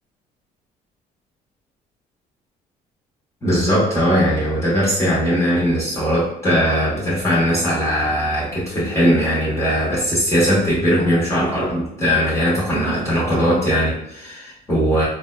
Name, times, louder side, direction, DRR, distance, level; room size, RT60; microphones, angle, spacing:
voice 1, 3.4-15.0, equal, 15° left, -9 dB, 1.0 m, -19 dB
3.4 x 2.2 x 2.2 m, 0.77 s
cardioid pair, 110°, 17 cm